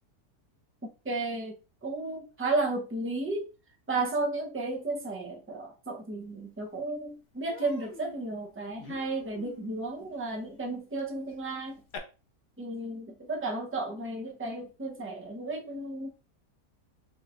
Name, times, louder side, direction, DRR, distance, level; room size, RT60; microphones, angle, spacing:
voice 1, 1.0-1.6 1.8-3.5 3.9-11.8 12.6-16.1, right 2 dB, 15° right, 0.5 m, -33 dB
Human voice, 6.5-6.6 6.9-7.1 7.5-12.0, left 3 dB, 50° left, 0.7 m, -49 dB
5.4 x 3.3 x 2.5 m
omnidirectional pair, 1.6 m